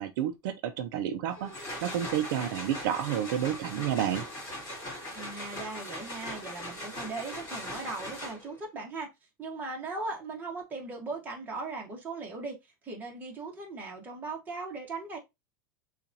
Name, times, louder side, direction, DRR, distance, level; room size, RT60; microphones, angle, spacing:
voice 1, 0.0-1.5 1.8-4.2, right 10 dB, 60° right, 0.6 m, -30 dB
sound 1, 1.3-8.6, left 1 dB, 20° left, 2.6 m, -40 dB
voice 2, 5.1-9.1 9.4-12.6 12.8-15.2, right 3 dB, 15° right, 1.3 m, -38 dB
6.8 x 2.5 x 2.7 m
supercardioid pair, 160°, 12 cm